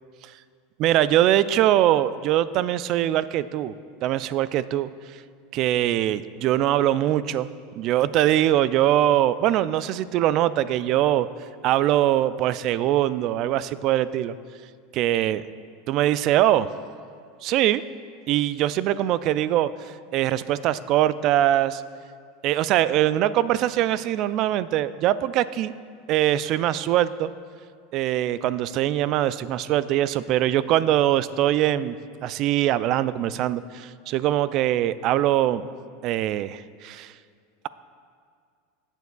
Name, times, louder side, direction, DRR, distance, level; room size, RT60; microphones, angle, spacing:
voice 1, 0.8-3.7 4.0-4.9 5.5-7.5 7.8-11.3 11.6-14.3 14.9-15.4 15.9-16.7 17.4-17.8 18.3-21.8 22.4-25.7 26.1-27.3 27.9-35.6 36.0-37.1, right 13 dB, 50° right, 16 dB, 0.3 m, -22 dB
16.5 x 7.1 x 2.3 m, 2.2 s
hypercardioid pair, 100°, 0 cm